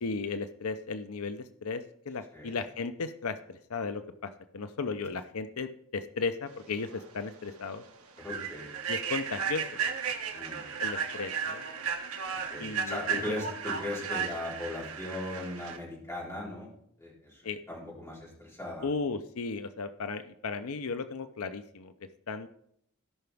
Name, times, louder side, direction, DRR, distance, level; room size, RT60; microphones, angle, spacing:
voice 1, 0.0-7.8 8.9-9.8 10.8-11.6 12.6-13.0 13.3-13.4 17.4-17.6 18.8-21.9 22.3-22.5, left 4 dB, 90° left, 10 dB, 0.6 m, -35 dB
Human voice / Train, 6.9-7.0 7.5-7.7 8.2-15.8, right 6 dB, 75° right, 1.6 m, -34 dB
voice 2, 8.2-8.7 10.3-10.6 12.3-16.7 17.0-18.9, left 1 dB, 15° left, -5 dB, 4.1 m, -38 dB
17.0 x 5.7 x 3.5 m, 0.71 s
head